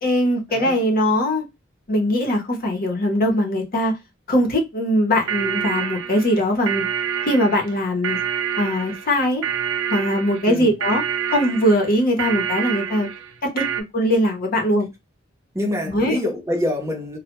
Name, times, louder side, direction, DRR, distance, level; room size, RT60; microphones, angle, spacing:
voice 1, 0.0-1.4 1.9-3.9 4.3-6.8 7.3-8.2 8.6-9.4 9.9-11.0 11.3-13.1 13.5-13.6 13.9-14.9 15.9-16.2, equal, 50° left, 0.7 m, -20 dB
sound 1, 5.3-13.8, right 8 dB, 85° right, 0.4 m, -27 dB
voice 2, 10.5-10.8 15.5-17.2, left 1 dB, 15° right, 0.7 m, -26 dB
2.1 x 2.1 x 2.9 m
head